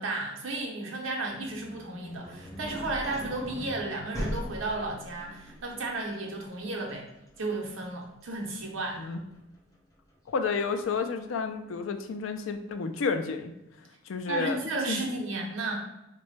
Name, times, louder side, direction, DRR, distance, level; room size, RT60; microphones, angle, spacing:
voice 1, 0.0-7.0 7.4-9.0 14.3-15.8, right 2 dB, 85° right, 0 dB, 0.7 m, -33 dB
sound 1, 1.3-11.0, equal, 15° left, 0.6 m, -41 dB
voice 2, 10.3-13.5 14.1-14.6 14.9-15.1, left 5 dB, 85° left, 8 dB, 0.4 m, -31 dB
4.0 x 2.2 x 3.1 m, 0.92 s
head